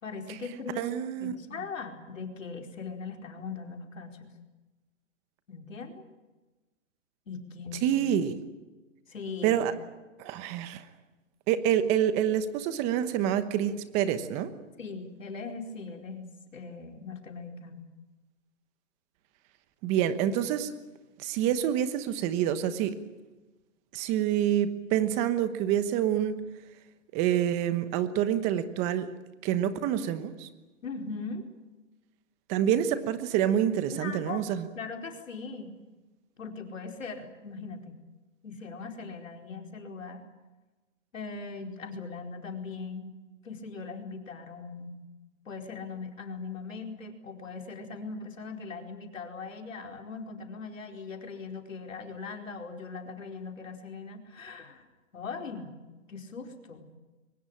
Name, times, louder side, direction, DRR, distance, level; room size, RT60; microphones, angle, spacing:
voice 1, 0.0-0.9 1.2-4.3 5.5-6.0 7.3-7.8 9.1-9.6 14.8-17.8 30.8-31.4 33.9-34.5 34.7-35.7 36.4-38.0 38.4-40.2 41.1-43.2 43.4-45.0 45.4-54.8 55.1-55.7 56.1-57.0, left 4 dB, 80° left, 3 dB, 4.7 m, -40 dB
voice 2, 0.8-1.4 7.8-8.4 9.4-9.7 10.2-10.9 11.5-14.5 19.8-20.7 21.2-23.0 23.9-26.4 27.1-29.1 29.4-30.5 32.5-34.7, right 10 dB, 20° right, 11 dB, 1.1 m, -27 dB
23.5 x 20.0 x 8.9 m, 1.1 s
hypercardioid pair, 155°, 38 cm